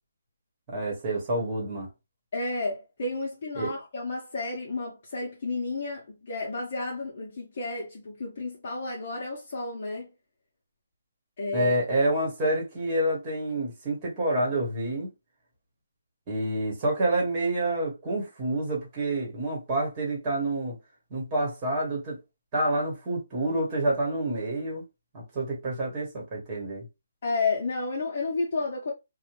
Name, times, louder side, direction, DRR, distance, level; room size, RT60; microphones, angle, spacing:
voice 1, 0.7-1.9 3.6-3.7 11.5-15.1 16.3-20.8 21.1-22.2 22.5-24.8 25.1-26.9, right 1 dB, 20° right, 1.2 m, -28 dB
voice 2, 2.3-10.1 11.4-11.7 27.2-28.9, left 3 dB, 40° left, 0.8 m, -31 dB
2.7 x 2.1 x 3.0 m
hypercardioid pair, 170°, 0 cm